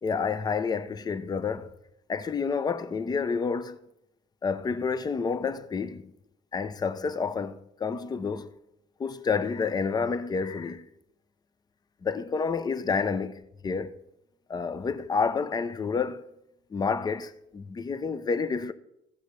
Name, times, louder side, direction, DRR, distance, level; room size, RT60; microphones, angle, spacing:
voice 1, 0.0-1.7 2.1-3.8 4.4-6.1 6.5-8.5 9.0-10.9 12.0-13.3 13.6-14.0 14.5-16.2 16.7-18.7, left 5 dB, 25° left, 0.6 m, -29 dB
15.0 x 5.0 x 6.6 m
cardioid pair, 110°, 17 cm